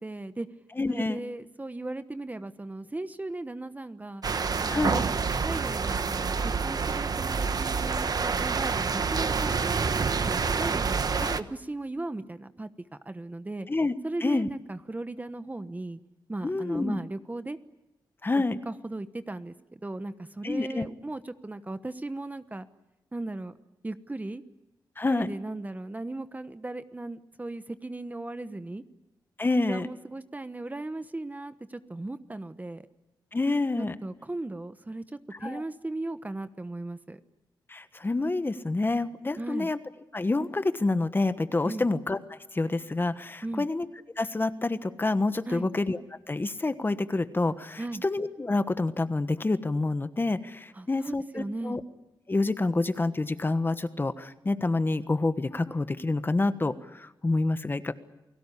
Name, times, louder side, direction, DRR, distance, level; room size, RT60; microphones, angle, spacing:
voice 1, 0.0-0.5 0.9-4.2 4.6-5.1 5.4-11.0 11.4-13.7 14.0-16.0 16.3-17.6 18.3-22.7 23.1-23.5 23.8-24.4 25.1-28.8 29.7-32.9 33.8-37.2 39.4-39.7 41.6-41.9 43.4-43.7 45.5-45.7 47.8-48.0 50.7-51.8, right 2 dB, 20° right, 11 dB, 1.1 m, -37 dB
voice 2, 0.8-1.2 4.7-5.0 11.2-11.4 13.7-13.9 14.2-14.5 16.4-17.0 18.2-18.6 20.4-20.9 25.0-25.3 29.4-29.9 33.3-33.9 35.4-35.6 37.7-39.8 40.1-42.2 42.5-43.9 44.2-46.0 46.3-51.8 52.3-57.9, left 2 dB, 25° left, 11 dB, 1.3 m, -28 dB
sound 1, 4.2-11.4, right 5 dB, 55° right, 1.1 m, -27 dB
29.0 x 18.5 x 10.0 m, 0.97 s
wide cardioid pair, 95°, 8 cm